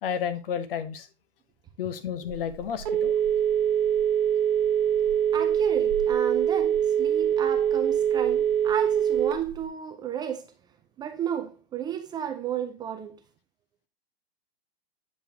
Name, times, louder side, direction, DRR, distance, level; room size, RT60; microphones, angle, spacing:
voice 1, 0.0-1.1 1.8-3.1, left 8 dB, 65° left, 1.1 m, -31 dB
Telephone, 2.3-9.6, right 9 dB, 55° right, 1.3 m, -24 dB
voice 2, 5.3-10.5 11.0-13.2, right 9 dB, 15° right, 0.4 m, -33 dB
8.7 x 5.3 x 2.8 m
hypercardioid pair, 120°, 30 cm